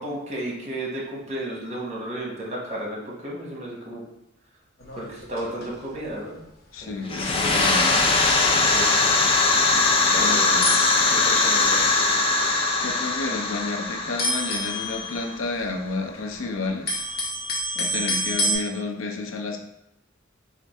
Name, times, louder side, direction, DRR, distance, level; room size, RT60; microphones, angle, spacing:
voice 1, 0.0-4.0 4.9-6.4 6.8-7.8 8.7-8.9 10.1-10.6 11.1-11.9, right 1 dB, 35° right, -3 dB, 1.0 m, -33 dB
sound 1, 4.8-5.8 6.1-6.3 6.8-7.0 7.4-7.5 7.9-8.0 8.3-8.5 9.3-9.4 10.0-10.1 10.6-12.0 12.7-13.2 13.5-13.7 14.2-16.2 16.5-18.6, equal, 55° left, 0.9 m, -29 dB
voice 2, 6.7-8.0 10.2-10.6 12.8-17.1 17.7-19.6, left 3 dB, 80° left, 3 dB, 0.5 m, -31 dB
sound 2, 7.1-15.6, left 3 dB, 30° left, 0.3 m, -21 dB
3.4 x 2.5 x 4.2 m, 0.87 s
head